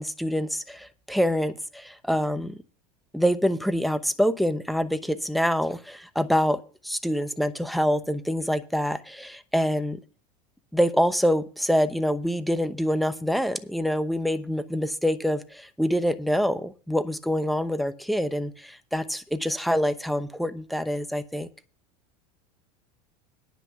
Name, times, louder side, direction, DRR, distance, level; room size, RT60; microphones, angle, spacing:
voice 1, 0.0-2.6 3.1-10.0 10.7-21.5, equal, ahead, 0.9 m, -26 dB
10.0 x 5.9 x 7.9 m
supercardioid pair, 105°, 19 cm